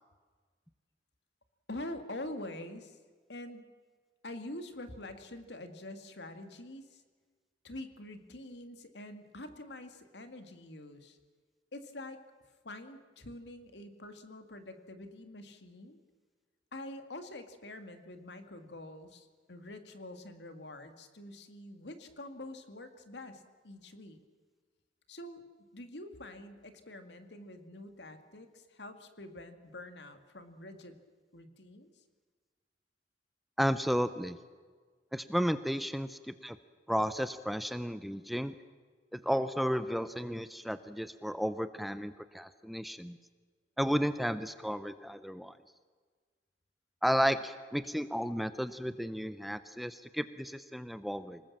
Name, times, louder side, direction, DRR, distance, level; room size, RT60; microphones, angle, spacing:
voice 1, 1.7-3.0 3.3-3.7 4.2-7.0 7.6-11.2 11.7-12.2 12.6-16.0 16.7-24.2 25.1-25.4 25.7-31.0 31.3-32.0, left 1 dB, 75° left, 8 dB, 2.1 m, -46 dB
voice 2, 33.6-34.4 35.1-36.6 36.9-38.5 39.1-43.2 43.8-45.5 47.0-51.4, equal, ahead, 12 dB, 0.7 m, -33 dB
26.0 x 19.5 x 7.4 m, 1.5 s
head